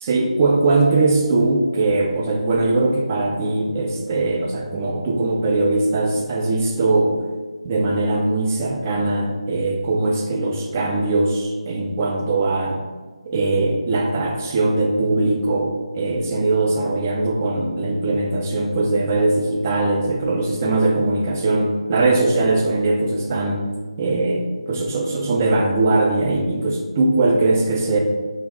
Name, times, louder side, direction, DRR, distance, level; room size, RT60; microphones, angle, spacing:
voice 1, 0.0-7.2 7.6-12.8 13.3-23.7 24.0-28.0, right 2 dB, 25° right, 1 dB, 0.3 m, -20 dB
2.9 x 2.0 x 3.5 m, 1.3 s
figure-of-eight pair, 160°, 4 cm